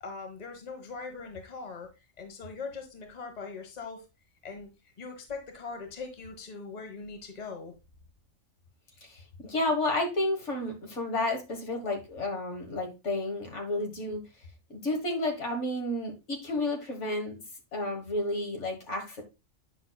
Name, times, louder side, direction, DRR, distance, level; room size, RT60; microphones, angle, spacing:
voice 1, 0.0-1.9 2.2-4.0 4.4-4.7 5.0-7.7, left 4 dB, 35° left, 1.2 m, -41 dB
voice 2, 9.0-14.2 14.7-17.3 17.7-19.2, left 2 dB, 65° left, 1.9 m, -31 dB
9.1 x 5.9 x 2.3 m
omnidirectional pair, 1.4 m